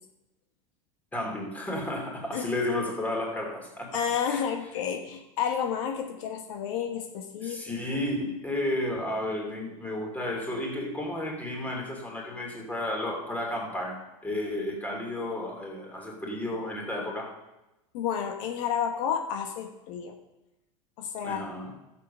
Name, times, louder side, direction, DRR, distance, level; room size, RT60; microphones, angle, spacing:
voice 1, 1.1-4.4 7.4-17.3 21.2-21.7, left 1 dB, 10° left, 0 dB, 2.9 m, -32 dB
voice 2, 3.9-7.6 17.9-20.2 21.0-21.5, left 8 dB, 65° left, 4 dB, 1.3 m, -31 dB
13.0 x 7.5 x 5.6 m, 0.95 s
supercardioid pair, 130°, 17 cm